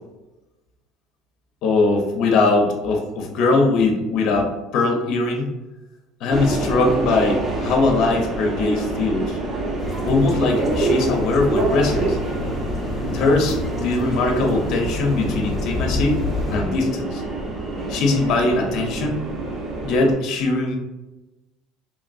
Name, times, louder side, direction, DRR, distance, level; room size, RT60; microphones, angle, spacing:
voice 1, 1.6-5.5 6.2-9.4 10.1-12.2 13.1-16.2 16.5-17.2 17.9-19.2 19.8-20.8, left 3 dB, 55° left, 2 dB, 0.5 m, -21 dB
Subway metro underground, 6.3-20.1, right 2 dB, 30° right, 0.6 m, -26 dB
sound 1, 9.8-16.6, left 2 dB, 15° left, 0.6 m, -29 dB
3.1 x 2.4 x 2.3 m, 1.1 s
supercardioid pair, 110°, 0 cm